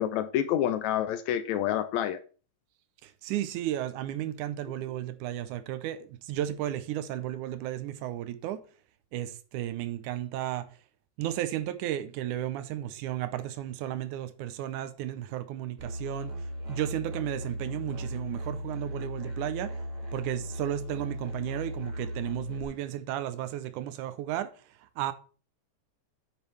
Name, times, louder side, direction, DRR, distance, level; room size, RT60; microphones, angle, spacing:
voice 1, 0.0-2.2, left 11 dB, 80° left, 1.8 m, -28 dB
voice 2, 3.0-8.6 9.1-10.7 11.2-16.4 16.7-19.7 20.1-24.5 25.0-25.1, right 12 dB, 85° right, 2.1 m, -34 dB
Musical instrument, 15.8-22.6, right 1 dB, 25° right, 2.2 m, -37 dB
9.0 x 8.1 x 3.3 m
omnidirectional pair, 3.6 m